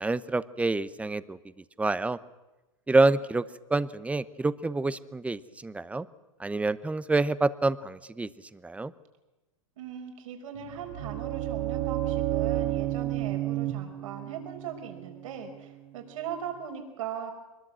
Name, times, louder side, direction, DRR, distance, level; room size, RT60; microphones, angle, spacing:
voice 1, 0.0-1.4 1.8-2.2 2.9-3.4 3.7-6.1 6.4-8.3 8.6-8.9, right 3 dB, 5° right, 16 dB, 0.9 m, -27 dB
voice 2, 9.8-17.3, right 8 dB, 70° right, 4 dB, 5.0 m, -39 dB
sound 1, 10.6-16.5, right 13 dB, 55° right, 2.8 m, -32 dB
23.5 x 20.5 x 7.7 m, 1.1 s
hypercardioid pair, 110°, 18 cm